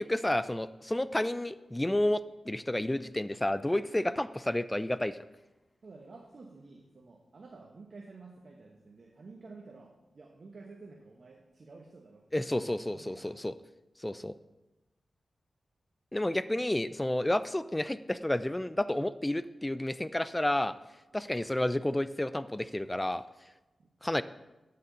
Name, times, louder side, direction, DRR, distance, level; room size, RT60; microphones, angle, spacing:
voice 1, 0.0-5.2 12.3-13.5 14.0-14.3 16.1-20.7 21.1-23.2 24.0-24.2, left 1 dB, 15° left, 14 dB, 0.3 m, -30 dB
voice 2, 5.8-13.3 14.3-14.4 16.6-16.7 17.3-17.4 21.1-21.3 23.8-23.9, right 3 dB, 55° right, 1 dB, 0.9 m, -51 dB
8.5 x 6.7 x 3.9 m, 1.0 s
wide cardioid pair, 75°, 0 cm